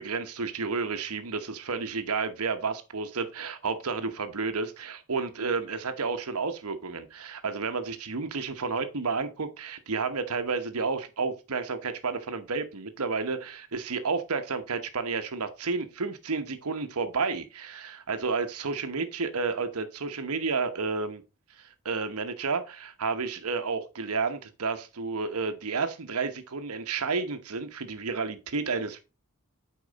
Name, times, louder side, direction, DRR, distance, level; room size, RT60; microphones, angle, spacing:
voice 1, 0.0-21.2 21.6-29.0, right 4 dB, 80° right, 1.0 m, -31 dB
8.4 x 4.7 x 4.0 m
head